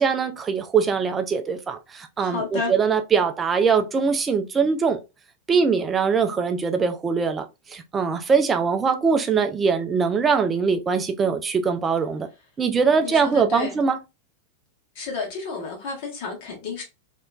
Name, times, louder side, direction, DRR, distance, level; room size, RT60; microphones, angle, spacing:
voice 1, 0.0-5.0 5.5-12.3 12.6-14.0, right 5 dB, 20° right, 0.4 m, -22 dB
voice 2, 2.2-2.7 13.0-13.8 14.9-16.8, left 4 dB, 45° left, 1.5 m, -31 dB
3.1 x 2.9 x 2.3 m
figure-of-eight pair, 90°, 0 cm